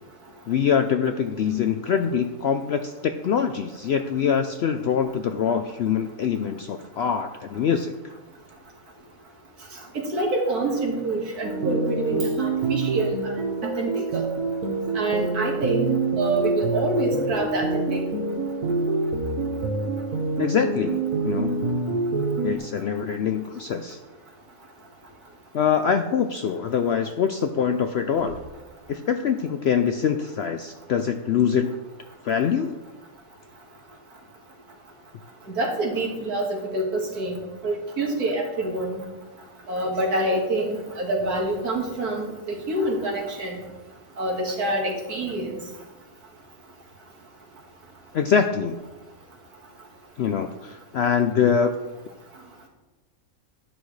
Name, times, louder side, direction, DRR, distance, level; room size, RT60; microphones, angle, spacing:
voice 1, 0.5-8.2 20.4-21.6 22.4-24.0 25.5-28.4 28.9-31.8 32.2-32.8 48.1-48.8 50.2-51.8, left 7 dB, 70° left, 7 dB, 0.6 m, -24 dB
voice 2, 9.9-14.2 14.9-18.0 35.6-39.0 39.7-43.6 44.2-45.6, right 2 dB, 85° right, 0 dB, 2.2 m, -27 dB
sound 1, 11.4-22.6, right 3 dB, 70° right, 1.4 m, -26 dB
10.5 x 9.4 x 3.2 m, 1.1 s
omnidirectional pair, 1.6 m